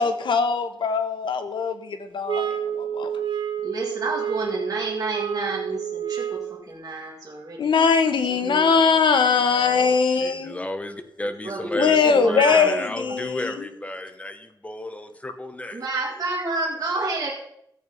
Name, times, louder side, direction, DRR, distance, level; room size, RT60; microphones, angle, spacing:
voice 1, 0.0-2.5 2.7-3.1 7.6-10.6 11.7-13.7, left 5 dB, 80° left, 8 dB, 1.3 m, -21 dB
sound 1, 2.3-6.6, right 9 dB, 85° right, 1.5 m, -29 dB
voice 2, 3.6-7.8 8.3-8.8 11.2-12.8 13.1-13.2 15.7-17.3, right 2 dB, 50° right, -3 dB, 2.0 m, -30 dB
voice 3, 9.3-15.8, left 1 dB, 15° left, 7 dB, 1.2 m, -33 dB
14.0 x 7.9 x 5.5 m, 0.75 s
wide cardioid pair, 135°, 8 cm